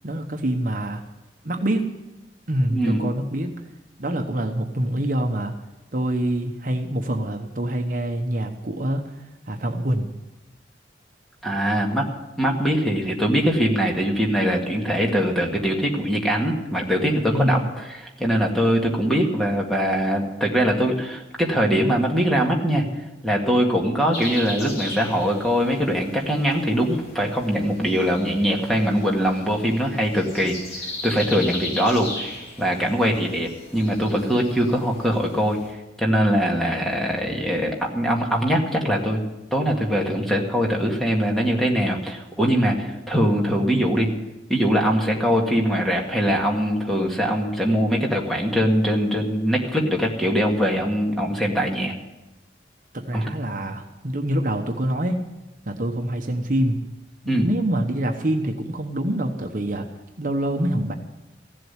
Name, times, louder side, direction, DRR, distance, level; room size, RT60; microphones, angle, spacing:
voice 1, 0.0-1.0 1.4-1.9 2.5-3.6 4.0-5.5 5.9-9.2 9.5-10.1 17.3-17.7 52.9-55.2 55.7-56.8 57.2-59.9 60.2-60.9, right 1 dB, 50° right, 4 dB, 1.1 m, -25 dB
voice 2, 2.7-3.0 11.4-12.1 12.4-22.8 23.2-30.6 31.0-32.3 32.6-39.2 39.5-44.1 44.5-51.9 53.1-53.2 57.3-57.5, equal, ahead, -1 dB, 2.0 m, -22 dB
sound 1, 24.1-35.7, left 2 dB, 60° left, 3.9 m, -37 dB
15.5 x 7.7 x 9.7 m, 1.0 s
head